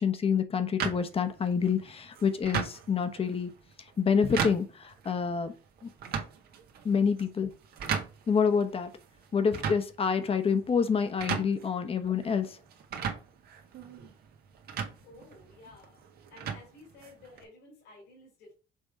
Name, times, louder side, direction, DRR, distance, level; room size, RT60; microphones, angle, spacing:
voice 1, 0.0-3.5 4.0-5.5 5.8-5.9 6.8-7.5 8.3-8.9 9.3-12.6, left 6 dB, 35° left, 1.1 m, -27 dB
sound 1, 0.8-17.4, right 7 dB, 65° right, 1.6 m, -38 dB
voice 2, 15.0-18.5, left 2 dB, 80° left, 3.0 m, -54 dB
6.5 x 3.5 x 4.9 m
cardioid pair, 110°, 17 cm